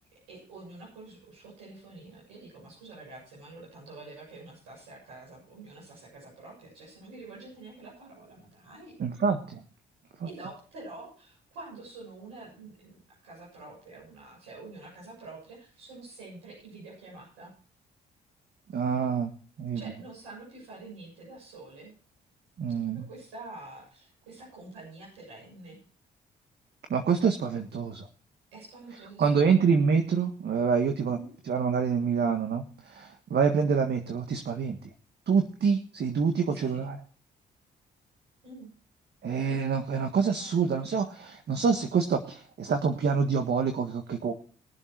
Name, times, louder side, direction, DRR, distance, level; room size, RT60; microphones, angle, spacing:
voice 1, 0.3-9.0 10.3-17.5 19.7-21.9 22.8-25.8 28.5-29.4 31.1-31.3 36.5-36.8 38.4-38.7 40.3-40.6, right 2 dB, 90° right, -5 dB, 7.4 m, -47 dB
voice 2, 9.0-9.6 10.2-10.3 18.7-19.3 19.6-19.8 22.6-23.1 26.9-28.1 29.2-31.2 31.4-34.8 35.3-37.0 39.2-44.3, right 6 dB, 55° right, 6 dB, 1.6 m, -26 dB
21.5 x 7.4 x 4.6 m, 0.40 s
hypercardioid pair, 50°, 20 cm